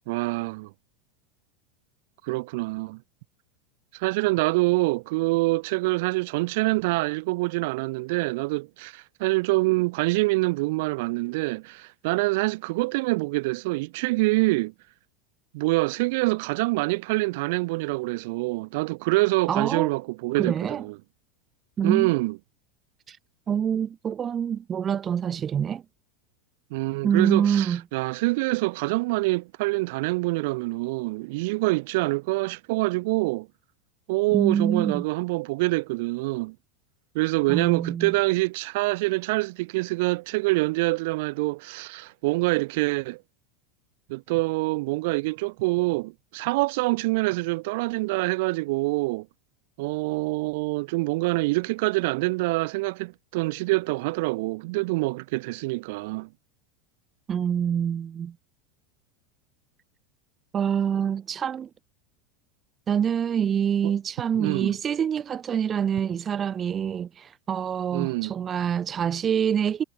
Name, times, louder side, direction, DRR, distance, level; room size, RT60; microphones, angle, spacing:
voice 1, 0.1-0.7 2.2-3.0 3.9-14.7 15.5-21.0 21.8-22.4 26.7-33.5 34.1-36.6 37.1-43.2 44.1-49.3 49.8-56.3 63.8-63.9 64.3-64.8 67.9-68.3, right 23 dB, 65° right, 0.9 m, -25 dB
voice 2, 19.5-19.9 20.4-20.8 21.8-22.1 23.1-23.2 23.5-25.8 27.0-27.8 34.3-35.0 37.5-38.1 57.3-58.3 60.5-61.7 62.9-69.8, right 8 dB, 30° right, 0.7 m, -26 dB
hypercardioid pair, 100°, 0 cm